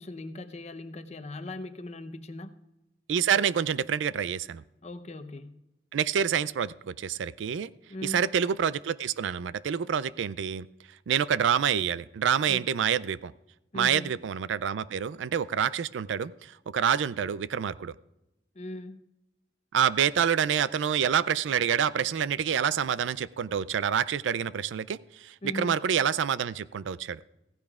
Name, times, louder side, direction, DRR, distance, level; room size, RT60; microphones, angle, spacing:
voice 1, 0.0-2.6 4.8-5.6 7.9-8.3 12.5-12.7 13.7-14.1 18.5-19.0 25.4-25.8, left 1 dB, 35° left, 9 dB, 0.7 m, -39 dB
voice 2, 3.1-4.6 5.9-7.7 8.0-10.7 11.1-13.3 13.7-17.9 19.7-27.2, right 8 dB, 85° right, 18 dB, 0.4 m, -27 dB
15.5 x 15.0 x 2.4 m, 0.94 s
head